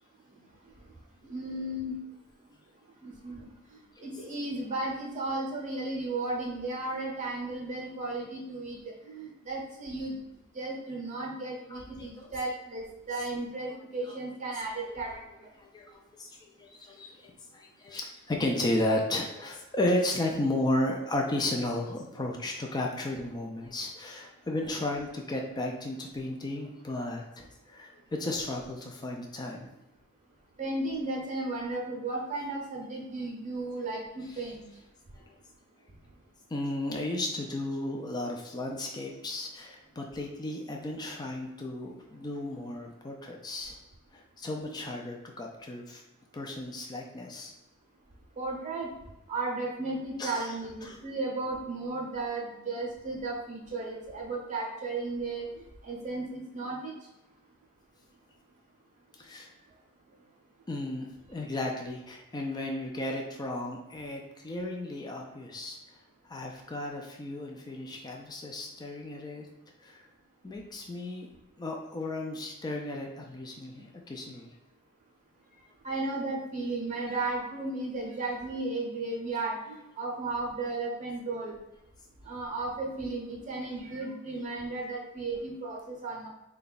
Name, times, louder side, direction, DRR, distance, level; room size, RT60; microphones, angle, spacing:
voice 1, 1.2-2.0 3.0-3.5 4.0-10.2 10.5-15.2 30.6-34.6 48.4-48.9 49.3-55.5 55.8-56.9 75.8-81.5 82.3-86.3, right 2 dB, 35° right, -1 dB, 0.7 m, -34 dB
voice 2, 11.7-12.3 14.1-14.2 15.6-29.7 36.5-43.8 44.1-46.0 46.3-47.5 50.2-50.5 50.8-51.0 59.2-59.5 60.7-65.8 66.3-69.5 69.8-70.1 70.4-71.3 71.6-74.5, left 1 dB, 20° left, 1 dB, 0.4 m, -34 dB
3.8 x 2.2 x 3.9 m, 0.94 s
head